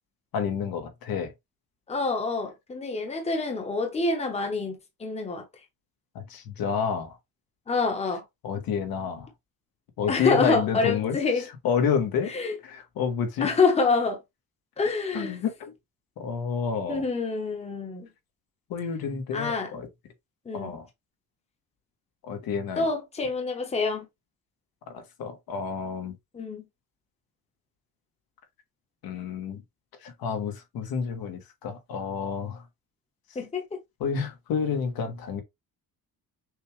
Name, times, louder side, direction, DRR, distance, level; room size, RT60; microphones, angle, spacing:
voice 1, 0.3-1.3 6.1-7.2 8.4-9.3 10.0-12.3 12.6-13.5 15.1-15.7 16.2-17.0 18.7-19.9 20.5-20.8 22.3-22.9 24.9-26.1 29.0-29.6 30.0-32.6 34.0-35.4, left 6 dB, 70° left, 1.3 m, -29 dB
voice 2, 1.9-5.4 7.7-8.2 10.1-11.5 12.3-12.5 13.4-14.2 14.8-15.4 16.9-18.1 19.3-19.7 20.5-20.8 22.8-24.1 26.3-26.7 33.3-33.6, left 4 dB, 15° left, 1.0 m, -26 dB
6.4 x 2.4 x 3.2 m
cardioid pair, 165°, 37 cm